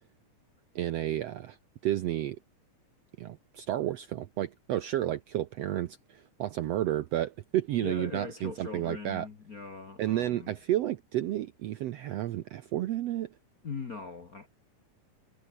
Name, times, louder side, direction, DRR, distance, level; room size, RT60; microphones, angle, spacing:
voice 1, 0.7-1.6 1.8-2.4 3.2-9.3 10.0-13.3, right 13 dB, 75° right, 1.5 m, -31 dB
voice 2, 7.8-10.5 13.6-14.5, left 5 dB, 45° left, 1.1 m, -40 dB
omnidirectional pair, 3.8 m